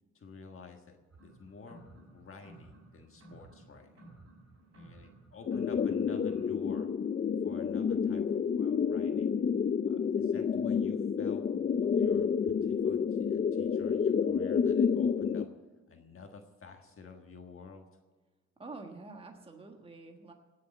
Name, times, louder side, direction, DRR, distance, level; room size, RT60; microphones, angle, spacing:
voice 1, 0.1-1.0 1.2-4.1 4.7-6.9 7.4-9.3 9.8-11.5 11.7-15.5 15.9-17.9, left 4 dB, 45° left, 4 dB, 1.5 m, -51 dB
sound 1, 1.1-6.5, right 2 dB, 50° right, 4.7 m, -55 dB
sound 2, 5.5-15.4, left 6 dB, 30° left, 0.4 m, -29 dB
voice 2, 18.6-20.3, right 3 dB, 20° right, 3 dB, 1.4 m, -47 dB
18.0 x 6.6 x 8.4 m, 1.3 s
cardioid pair, 110°, 29 cm